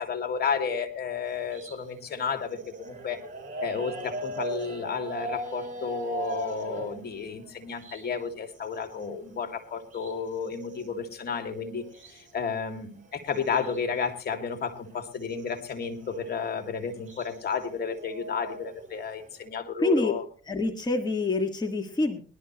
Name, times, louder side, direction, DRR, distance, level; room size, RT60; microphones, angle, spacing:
voice 1, 0.0-3.2 3.6-20.2, left 6 dB, 55° left, 7 dB, 2.2 m, -32 dB
sound 1, 1.2-8.3 8.6-12.3 12.7-12.8 13.0-13.8 14.1-19.5, right 2 dB, 40° right, 4.5 m, -40 dB
voice 2, 19.8-20.1 20.5-22.2, left 2 dB, 20° left, 2 dB, 1.7 m, -26 dB
20.5 x 12.0 x 3.0 m, 0.38 s
cardioid pair, 90°, 20 cm